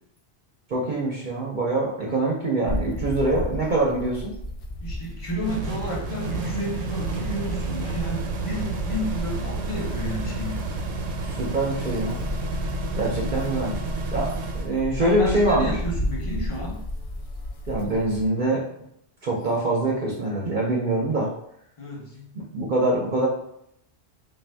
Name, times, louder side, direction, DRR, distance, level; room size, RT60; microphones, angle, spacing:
voice 1, 0.7-4.3 11.3-12.2 12.9-13.8 14.1-15.8 17.7-18.7 19.2-21.3 22.5-23.3, right 2 dB, 55° right, -3 dB, 0.7 m, -24 dB
sound 1, 2.7-18.2, left 1 dB, 60° left, 0.3 m, -33 dB
voice 2, 4.8-10.6 13.2-13.4 15.0-16.8 21.8-22.3, equal, 30° left, -3 dB, 0.9 m, -32 dB
sound 2, 5.4-14.7, right 3 dB, 90° right, 0.9 m, -31 dB
3.8 x 2.6 x 3.3 m, 0.74 s
omnidirectional pair, 1.1 m